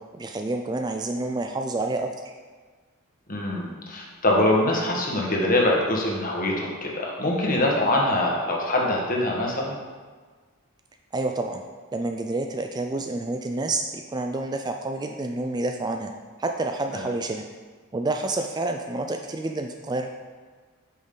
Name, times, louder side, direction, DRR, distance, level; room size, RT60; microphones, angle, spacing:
voice 1, 0.1-2.1 11.1-11.6 11.9-16.1 16.4-17.4 17.9-20.1, right 2 dB, 20° right, 4 dB, 0.3 m, -28 dB
voice 2, 3.3-9.7 16.9-17.1, left 1 dB, 40° left, -2 dB, 1.5 m, -24 dB
8.6 x 6.2 x 3.9 m, 1.5 s
head